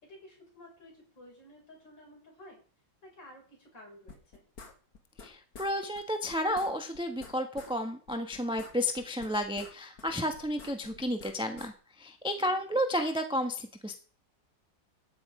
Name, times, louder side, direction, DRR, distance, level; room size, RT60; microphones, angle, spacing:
voice 1, 0.0-2.6 3.0-4.4 12.4-12.6, left 1 dB, 70° left, -2 dB, 6.7 m, -53 dB
sound 1, 4.1-5.3 5.5-5.7 6.0-6.1 6.3-7.7 8.1-9.7 10.0-11.7, left 4 dB, 55° left, 2.2 m, -49 dB
voice 2, 5.2-11.7 12.0-14.0, equal, 5° right, 5 dB, 0.9 m, -32 dB
13.5 x 9.8 x 4.9 m, 0.41 s
omnidirectional pair, 2.0 m